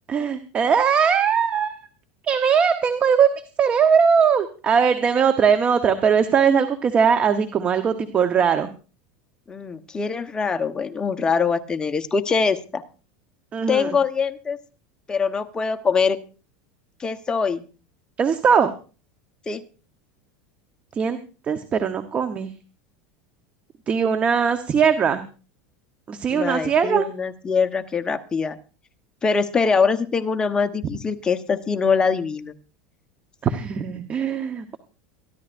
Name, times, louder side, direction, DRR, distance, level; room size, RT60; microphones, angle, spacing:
voice 1, 0.1-1.8 2.3-8.7 13.5-14.0 18.2-18.7 20.9-21.2 21.5-22.5 23.9-25.2 26.1-27.0 33.4-34.8, right 7 dB, 25° right, 9 dB, 1.0 m, -20 dB
voice 2, 9.5-12.8 13.7-14.6 15.1-16.2 17.0-17.6 19.5-19.6 26.3-28.6 29.2-32.5, left 5 dB, 15° left, 8 dB, 1.0 m, -23 dB
23.5 x 13.5 x 2.6 m, 0.36 s
supercardioid pair, 140°, 5 cm